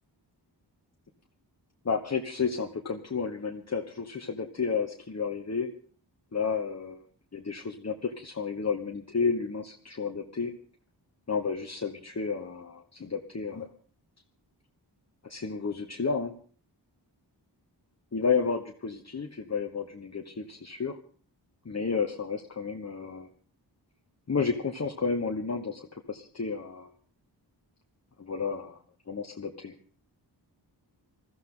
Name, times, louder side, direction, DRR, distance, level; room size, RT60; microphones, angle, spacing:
voice 1, 1.8-5.7 6.3-7.0 7.3-10.5 11.3-13.7 15.3-16.3 18.1-21.0 21.6-23.3 24.3-26.9 28.2-28.8 29.1-29.7, left 5 dB, 40° left, 3 dB, 1.3 m, -31 dB
21.0 x 14.5 x 3.9 m, 0.43 s
wide cardioid pair, 110°, 42 cm